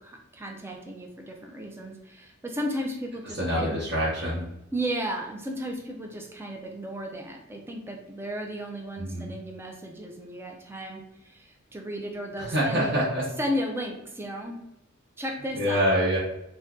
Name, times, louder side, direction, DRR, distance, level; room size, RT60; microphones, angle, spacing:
voice 1, 0.0-3.8 4.7-13.0 13.4-14.6 15.2-15.8, equal, 10° right, 2 dB, 0.4 m, -34 dB
voice 2, 3.4-4.4 9.0-9.3 12.4-13.2 15.5-16.2, equal, 55° right, -8 dB, 0.8 m, -25 dB
2.6 x 2.2 x 3.5 m, 0.86 s
head